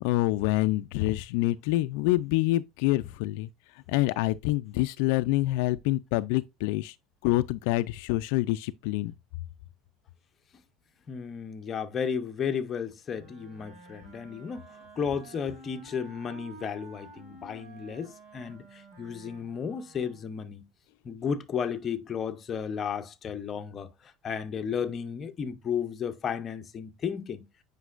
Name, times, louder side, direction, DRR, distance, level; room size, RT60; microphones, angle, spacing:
voice 1, 0.0-3.5 3.9-6.9 7.2-9.1, left 17 dB, 75° left, 0.3 m, -26 dB
voice 2, 11.1-14.7 15.0-20.6 21.0-27.4, left 7 dB, 25° left, 0.7 m, -33 dB
Wind instrument woodwind instrument, 13.1-20.5, right 3 dB, 70° right, 2.7 m, -51 dB
8.1 x 5.2 x 2.4 m
cardioid pair, 155°, 0 cm